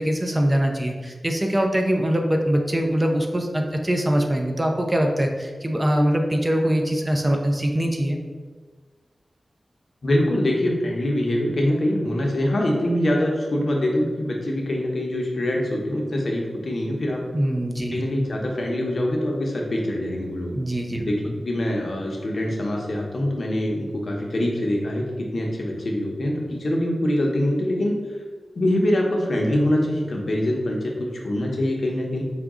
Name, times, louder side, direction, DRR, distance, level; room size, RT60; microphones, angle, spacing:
voice 1, 0.0-8.2 17.3-18.0 20.5-21.4, equal, 20° right, 2 dB, 0.4 m, -23 dB
voice 2, 10.0-17.2 17.9-20.5 21.0-27.9 28.6-32.2, left 1 dB, 60° left, -1 dB, 0.8 m, -24 dB
4.9 x 2.3 x 3.6 m, 1.5 s
wide cardioid pair, 90°, 0 cm